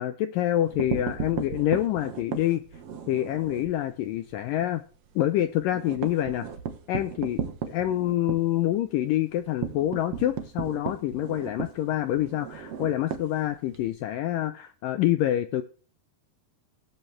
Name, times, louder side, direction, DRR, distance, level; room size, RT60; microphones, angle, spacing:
voice 1, 0.0-2.6 3.1-4.8 5.2-6.5 6.9-15.6, left 13 dB, 85° left, 11 dB, 1.9 m, -26 dB
sound 1, 0.6-3.8 4.1-4.3 4.6-4.7 5.1-13.9, right 8 dB, 70° right, 1.4 m, -35 dB
18.0 x 8.1 x 3.3 m, 0.39 s
omnidirectional pair, 4.7 m